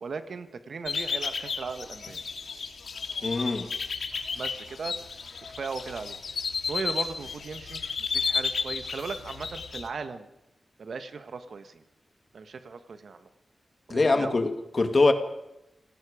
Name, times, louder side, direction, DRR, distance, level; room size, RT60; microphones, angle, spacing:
voice 1, 0.0-2.2 4.3-5.2 5.6-6.2 6.7-7.8 8.1-10.3 10.8-11.8 12.3-13.3 13.9-14.4, right 4 dB, 70° right, 9 dB, 1.6 m, -37 dB
sound 1, 0.9-9.9, left 5 dB, 80° left, 2.3 m, -33 dB
voice 2, 3.2-3.7 13.9-15.1, left 3 dB, 40° left, 7 dB, 2.1 m, -23 dB
29.0 x 18.5 x 5.1 m, 0.88 s
wide cardioid pair, 120°, 0 cm